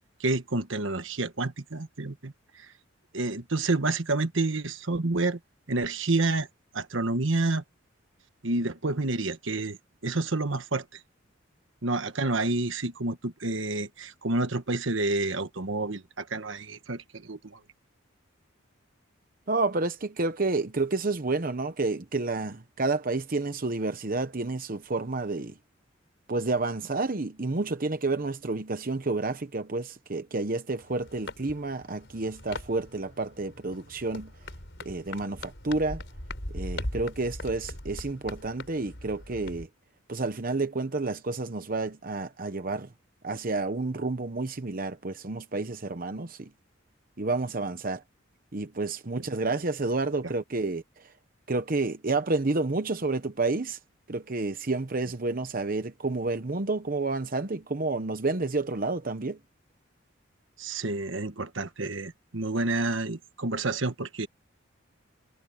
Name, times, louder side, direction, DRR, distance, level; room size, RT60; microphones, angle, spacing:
voice 1, 0.2-2.7 3.1-5.4 5.7-6.5 6.7-7.6 8.4-9.8 10.0-11.0 11.8-17.6 60.6-64.3, right 2 dB, 75° right, 1.3 m, -29 dB
voice 2, 19.5-25.6 26.3-34.3 34.8-36.0 36.5-39.7 40.1-42.9 43.2-46.5 47.2-48.0 48.5-51.1 51.5-53.8 54.1-59.4, right 3 dB, 45° right, 0.9 m, -30 dB
sound 1, 30.8-39.7, left 1 dB, 60° left, 5.8 m, -40 dB
head